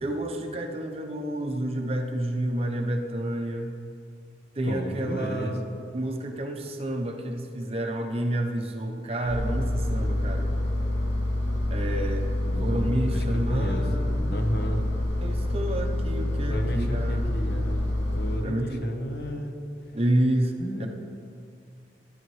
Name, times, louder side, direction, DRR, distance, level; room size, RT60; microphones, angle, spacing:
voice 1, 0.0-3.8 4.6-5.7 5.9-10.6 11.7-12.3 12.6-14.4 15.2-17.3 18.4-18.9 19.9-20.9, right 1 dB, 35° right, 3 dB, 0.7 m, -29 dB
voice 2, 4.6-5.6 12.4-13.8 14.3-14.8 16.5-19.5 20.6-20.9, equal, 60° left, 3 dB, 1.0 m, -32 dB
Engine, 9.2-18.4, left 1 dB, 75° left, 2.8 m, -27 dB
12.0 x 11.5 x 3.2 m, 2.3 s
head